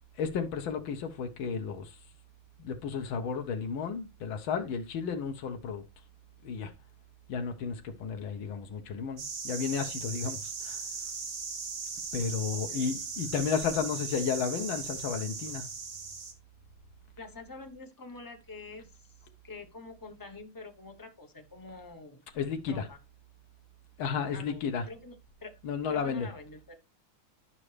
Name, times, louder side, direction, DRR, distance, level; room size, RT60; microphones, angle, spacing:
voice 1, 0.2-2.0 2.6-5.8 6.4-6.7 7.3-10.8 12.1-15.7 22.4-22.9 24.0-24.8 25.6-26.3, left 6 dB, 70° left, 1.8 m, -33 dB
sound 1, 9.2-16.3, right 5 dB, 55° right, 2.1 m, -38 dB
voice 2, 17.2-19.1 19.4-22.2 22.7-23.0 24.3-25.5 25.9-26.7, left 3 dB, 20° left, 0.5 m, -46 dB
11.0 x 5.7 x 3.3 m
omnidirectional pair, 2.3 m